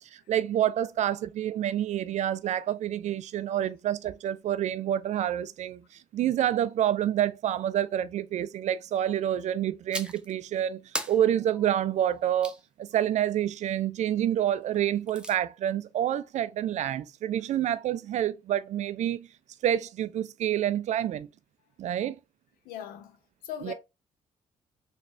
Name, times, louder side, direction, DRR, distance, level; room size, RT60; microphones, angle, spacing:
voice 1, 0.1-5.8 6.1-10.8 11.1-19.3 19.6-21.3 21.8-22.2 23.6-23.7, right 11 dB, 45° right, 0.4 m, -28 dB
sound 1, 9.9-10.3 10.9-12.6 14.7-15.4, right 1 dB, 5° right, 0.8 m, -38 dB
voice 2, 22.6-23.2 23.4-23.7, left 9 dB, 60° left, 0.8 m, -38 dB
4.1 x 3.3 x 3.1 m
figure-of-eight pair, 40°, 16 cm